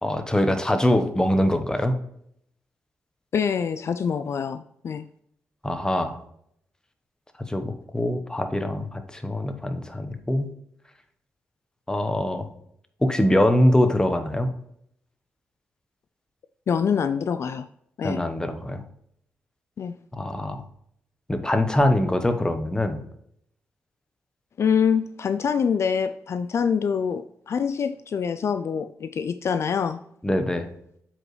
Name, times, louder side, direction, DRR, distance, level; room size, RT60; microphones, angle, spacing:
voice 1, 0.0-2.0 5.6-6.2 7.5-10.5 11.9-12.5 13.0-14.5 18.0-18.8 20.1-20.6 21.3-23.0 30.2-30.7, left 1 dB, 15° left, 7 dB, 1.0 m, -23 dB
voice 2, 3.3-5.0 16.7-17.7 18.0-18.2 19.8-19.9 24.6-30.0, left 7 dB, 60° left, 11 dB, 0.4 m, -25 dB
7.4 x 4.8 x 3.2 m, 0.71 s
cardioid pair, 70°, 5 cm